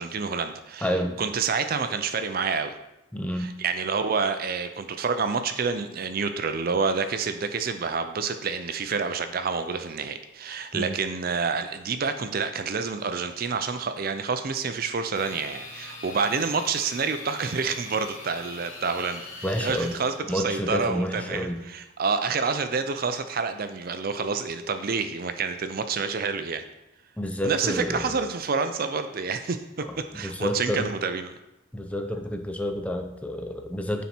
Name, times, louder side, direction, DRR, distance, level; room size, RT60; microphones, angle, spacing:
voice 1, 0.0-0.9 1.2-2.8 3.4-19.2 19.6-26.6 27.4-29.9 30.1-31.3, right 5 dB, 45° right, 9 dB, 0.5 m, -28 dB
voice 2, 0.8-1.2 3.1-3.5 10.7-11.0 19.4-20.0 20.3-21.6 27.2-28.1 29.9-30.9 31.7-34.0, equal, 5° left, 5 dB, 0.5 m, -29 dB
sound 1, 15.1-20.2, left 3 dB, 90° left, 2.2 m, -42 dB
9.3 x 4.2 x 4.3 m, 0.89 s
head